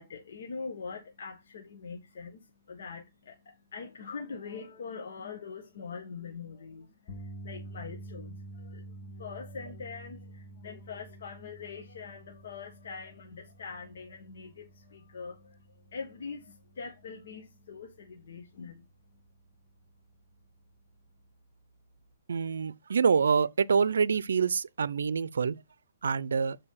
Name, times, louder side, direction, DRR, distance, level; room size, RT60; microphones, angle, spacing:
voice 1, 0.0-15.6 15.9-18.8, left 5 dB, 60° left, 1.5 m, -43 dB
sound 1, 7.1-19.3 19.7-19.9 22.1-22.2, right 1 dB, 20° left, 1.5 m, -49 dB
voice 2, 22.3-25.6 26.0-26.6, right 6 dB, 80° right, 0.5 m, -26 dB
6.7 x 4.6 x 5.8 m
hypercardioid pair, 160°, 0 cm